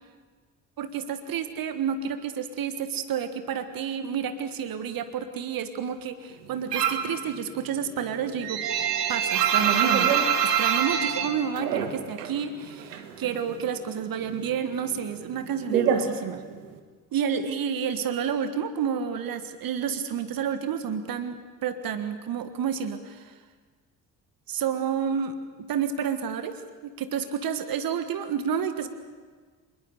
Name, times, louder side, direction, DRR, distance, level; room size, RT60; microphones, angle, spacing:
voice 1, 0.8-8.6 9.1-10.2 10.4-16.4 17.1-23.3 24.5-25.4 25.7-28.9, right 7 dB, 45° right, 10 dB, 1.5 m, -30 dB
sound 1, 6.7-7.2 7.5-12.4 12.6-13.7 14.0-16.8, right 8 dB, 75° right, 1.7 m, -25 dB
26.5 x 21.0 x 6.9 m, 1.5 s
figure-of-eight pair, 50°, 48 cm